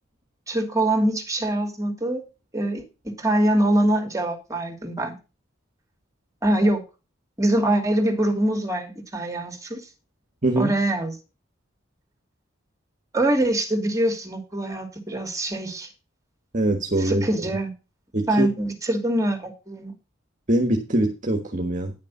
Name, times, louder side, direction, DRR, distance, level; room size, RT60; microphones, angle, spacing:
voice 1, 0.5-2.2 2.5-5.1 6.4-6.8 7.4-9.8 10.6-11.1 13.1-15.9 17.0-17.7 18.3-19.9, right 1 dB, 15° right, 5 dB, 2.7 m, -24 dB
voice 2, 10.4-10.7 16.5-17.2 18.1-18.5 20.5-21.9, right 1 dB, 40° right, 4 dB, 1.4 m, -22 dB
10.5 x 6.6 x 5.5 m, 0.29 s
head